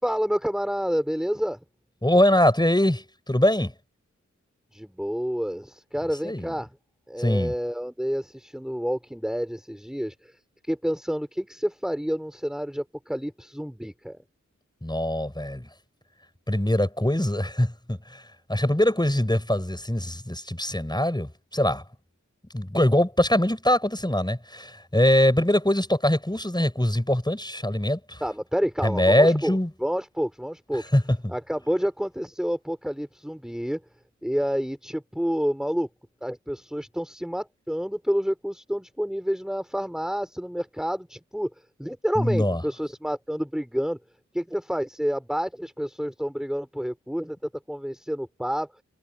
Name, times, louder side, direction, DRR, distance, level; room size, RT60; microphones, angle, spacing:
voice 1, 0.0-1.6 4.7-6.7 7.1-10.4 10.6-14.2 28.2-30.8 31.3-33.8 34.2-35.9 36.2-41.5 41.8-44.0 44.3-47.4 47.7-48.7, equal, ahead, 4.0 m, -29 dB
voice 2, 2.0-3.7 6.2-6.5 7.2-7.5 14.8-15.7 16.5-18.2 18.5-21.8 22.5-28.2 28.8-29.7 30.9-31.3 42.2-42.6, left 1 dB, 15° left, 7.6 m, -23 dB
wide cardioid pair, 50°, 30 cm